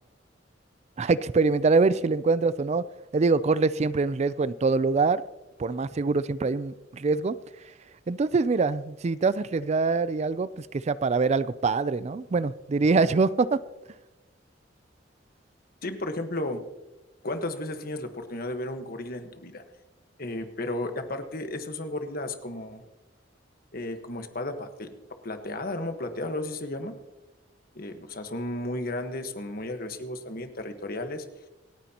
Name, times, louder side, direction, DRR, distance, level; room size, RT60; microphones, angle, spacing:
voice 1, 1.0-2.8 3.1-5.2 5.6-7.4 8.1-13.6, right 4 dB, 35° right, 16 dB, 0.4 m, -24 dB
voice 2, 15.8-16.6 17.2-19.6 20.2-22.8 23.7-24.9 25.2-27.0 27.7-31.2, left 1 dB, 55° left, 7 dB, 1.4 m, -33 dB
27.5 x 9.3 x 2.9 m, 1.0 s
head